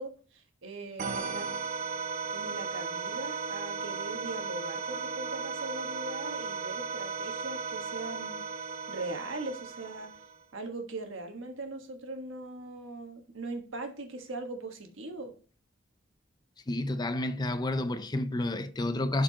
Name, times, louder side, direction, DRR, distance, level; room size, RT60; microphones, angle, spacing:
voice 1, 0.0-1.5 2.3-8.5 8.9-10.1 10.5-15.3, right 2 dB, 70° right, 1.3 m, -40 dB
sound 1, 1.0-10.4, right 5 dB, 40° right, 0.9 m, -36 dB
voice 2, 16.7-19.2, left 1 dB, 20° left, 0.5 m, -30 dB
11.5 x 4.6 x 2.8 m
head